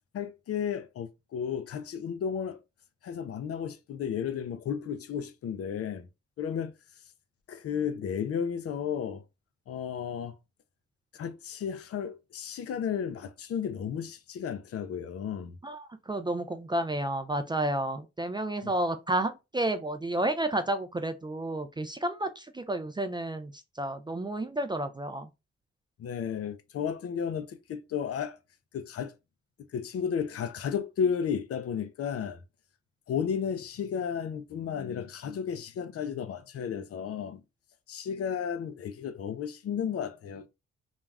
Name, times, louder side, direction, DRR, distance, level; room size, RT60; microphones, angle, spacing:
voice 1, 0.1-2.6 3.0-6.1 6.4-6.7 7.5-9.2 9.7-10.3 11.1-15.6 18.6-18.7 26.0-28.4 28.7-29.1 29.7-32.4 33.1-37.4 37.9-40.5, left 7 dB, 55° left, 0.4 m, -33 dB
voice 2, 15.6-25.3, right 1 dB, 15° right, 0.3 m, -31 dB
2.3 x 2.0 x 3.3 m
supercardioid pair, 50°, 29 cm